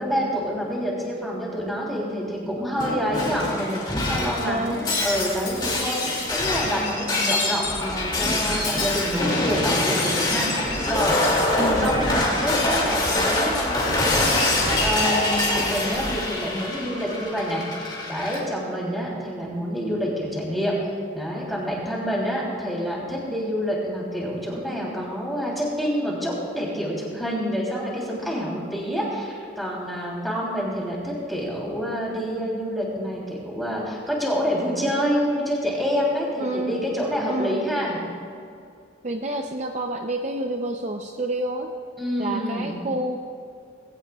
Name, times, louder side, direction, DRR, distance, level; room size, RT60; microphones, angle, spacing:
voice 1, 0.0-11.2 11.5-20.7 21.1-38.0 42.0-42.8, equal, ahead, -5 dB, 3.2 m, -27 dB
Shatter, 2.8-18.4, left 2 dB, 25° left, 2.4 m, -24 dB
voice 2, 4.4-4.8 11.6-12.0 36.4-36.7 37.3-37.6 39.0-41.7 42.2-43.2, right 1 dB, 35° right, 3 dB, 0.6 m, -28 dB
19.5 x 16.5 x 2.4 m, 2.5 s
head